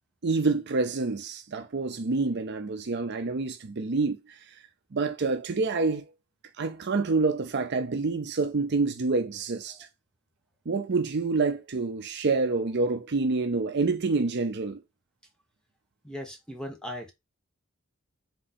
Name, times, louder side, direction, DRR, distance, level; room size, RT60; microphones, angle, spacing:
voice 1, 0.2-4.2 4.9-6.0 6.6-9.8 10.7-14.8, right 3 dB, 55° right, 0.6 m, -27 dB
voice 2, 16.0-17.1, left 1 dB, 5° left, 0.9 m, -38 dB
3.7 x 2.8 x 4.1 m
head